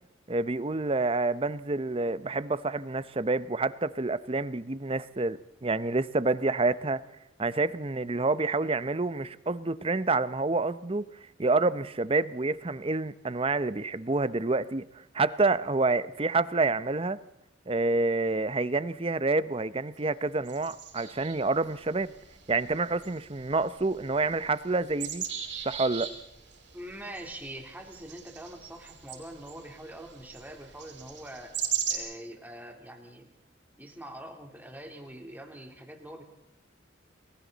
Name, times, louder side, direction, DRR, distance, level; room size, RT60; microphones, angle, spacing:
voice 1, 0.3-7.0 7.4-11.0 11.4-14.8 15.1-17.2 17.7-22.1 22.5-25.2 25.6-26.1, right 3 dB, 30° right, 15 dB, 0.7 m, -28 dB
sound 1, 20.4-32.0, right 9 dB, 65° right, 6.1 m, -39 dB
voice 2, 26.7-31.5 31.9-33.3 33.8-36.2, right 1 dB, 10° right, 2 dB, 3.3 m, -44 dB
30.0 x 22.0 x 4.1 m, 0.85 s
head